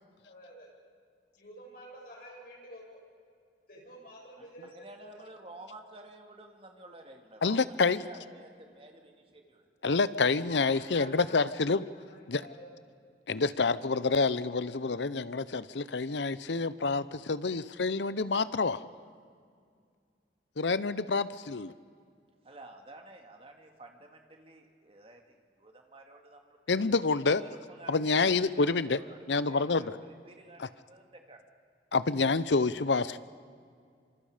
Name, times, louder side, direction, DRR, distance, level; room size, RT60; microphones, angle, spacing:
voice 1, 0.2-0.7 1.4-3.0 3.7-5.1 10.5-11.5 12.1-12.7, equal, 55° left, -2 dB, 7.2 m, -49 dB
voice 2, 4.4-7.6 7.9-9.7 22.4-27.0 27.4-29.2 29.5-31.4, right 2 dB, 35° right, 3 dB, 2.5 m, -51 dB
voice 3, 7.4-8.0 9.8-11.8 12.3-12.5 13.3-18.8 20.6-21.7 26.7-27.4 27.9-29.0 29.3-30.0 30.6-30.7 31.9-33.2, left 4 dB, 85° left, 16 dB, 0.8 m, -28 dB
26.5 x 26.0 x 5.1 m, 2.2 s
head